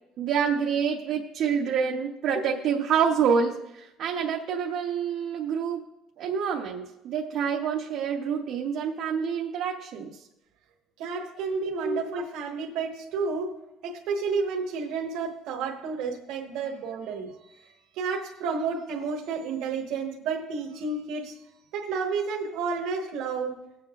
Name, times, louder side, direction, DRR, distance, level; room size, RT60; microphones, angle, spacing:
voice 1, 0.2-5.8 6.2-10.2 11.8-12.2, right 7 dB, 50° right, 0 dB, 0.7 m, -27 dB
voice 2, 11.0-13.5 13.8-21.3 21.7-23.5, right 4 dB, 65° right, 0 dB, 1.1 m, -31 dB
20.0 x 7.7 x 2.4 m, 0.91 s
cardioid pair, 180°, 0 cm